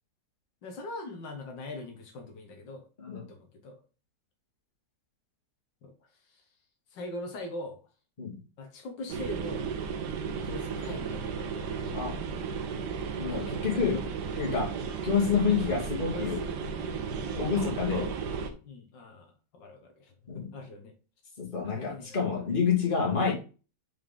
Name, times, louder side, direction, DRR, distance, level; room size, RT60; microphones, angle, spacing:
voice 1, 0.6-2.9 3.3-3.8 5.8-6.5 6.9-7.8 8.6-9.7 10.4-12.1 13.3-14.0 16.1-17.5 17.8-20.9 21.6-22.2, left 2 dB, 75° left, 4 dB, 1.8 m, -42 dB
sound 1, 9.1-18.5, right 5 dB, 70° right, 1.4 m, -34 dB
voice 2, 13.2-14.0 14.4-14.7 15.0-16.4 17.4-18.1 20.3-20.5 21.4-23.3, left 6 dB, 30° left, -2 dB, 2.0 m, -28 dB
5.7 x 4.8 x 3.6 m, 0.34 s
omnidirectional pair, 2.0 m